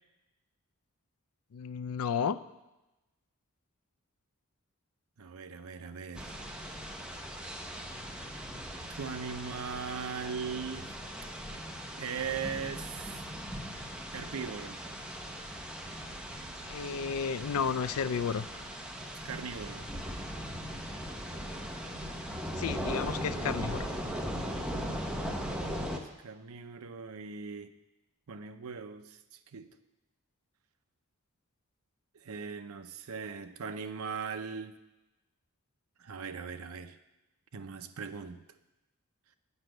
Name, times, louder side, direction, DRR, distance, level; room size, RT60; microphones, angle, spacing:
voice 1, 1.5-2.4 16.7-18.4 22.6-23.9, left 6 dB, 80° left, 14 dB, 0.4 m, -32 dB
voice 2, 5.2-6.3 8.9-10.9 12.0-13.2 14.1-14.8 19.2-19.9 26.2-27.7 28.3-29.2 29.5-29.7 32.2-34.8 36.0-37.0 37.5-38.4, right 5 dB, 75° right, 10 dB, 0.6 m, -39 dB
sound 1, 6.1-26.0, equal, 5° right, 0.9 m, -39 dB
8.2 x 5.9 x 7.7 m, 0.99 s
head